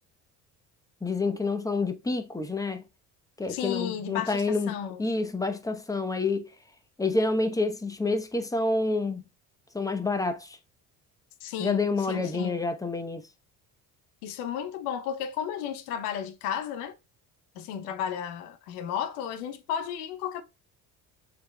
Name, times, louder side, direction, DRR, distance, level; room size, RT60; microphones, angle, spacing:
voice 1, 1.0-2.8 3.4-6.5 7.0-9.3 9.7-10.6 11.6-13.2, left 3 dB, 10° left, 0.8 m, -28 dB
voice 2, 3.5-5.1 11.4-12.6 14.2-17.0 17.5-20.4, left 9 dB, 90° left, 0.7 m, -33 dB
6.8 x 3.5 x 2.2 m
supercardioid pair, 70°, 44 cm